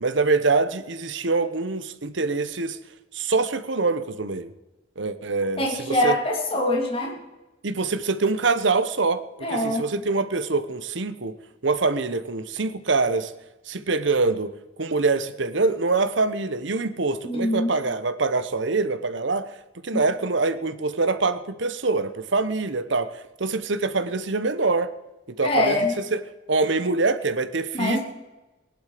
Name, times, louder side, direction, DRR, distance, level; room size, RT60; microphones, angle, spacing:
voice 1, 0.0-2.8 3.1-4.5 5.0-6.2 7.6-11.3 11.6-13.3 13.7-19.5 19.8-24.9 25.4-25.8 26.1-26.2 26.5-28.0, right 3 dB, 65° right, 13 dB, 1.0 m, -24 dB
voice 2, 5.6-7.2 9.4-9.8 17.2-17.7 19.9-20.0 25.4-25.9 27.7-28.0, left 1 dB, 30° left, -1 dB, 3.0 m, -24 dB
18.5 x 11.5 x 5.1 m, 1.0 s
head